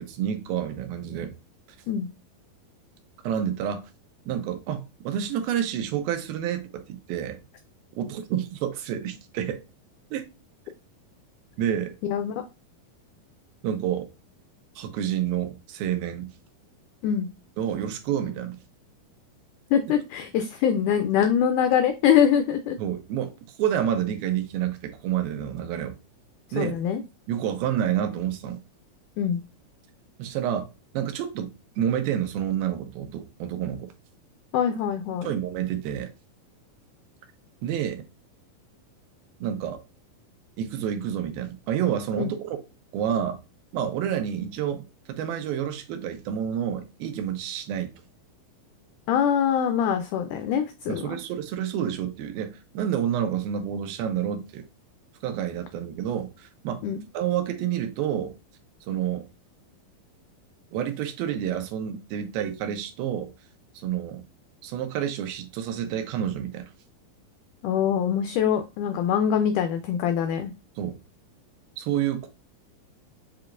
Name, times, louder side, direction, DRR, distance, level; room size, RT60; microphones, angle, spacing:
voice 1, 0.0-1.3 3.2-3.9 4.3-7.4 7.9-9.6 10.1-10.3 11.6-12.0 13.6-14.1 14.8-16.3 17.6-18.6 22.8-23.3 23.6-25.9 26.5-26.8 27.3-28.6 30.2-30.7 30.9-33.9 35.2-36.1 37.6-38.0 39.4-39.8 40.6-42.6 42.9-43.4 43.7-47.9 50.9-54.6 55.2-56.8 57.1-58.3 58.9-59.3 60.7-63.3 63.7-64.2 64.6-66.7 70.8-71.0 71.8-72.3, right 9 dB, 85° right, 2.7 m, -29 dB
voice 2, 12.0-12.3 17.0-17.3 19.7-22.8 26.5-27.0 29.2-29.4 34.5-35.4 42.2-42.3 49.1-51.2 56.8-57.0 67.6-70.5, left 8 dB, 85° left, 1.8 m, -24 dB
7.1 x 2.9 x 2.5 m
omnidirectional pair, 4.2 m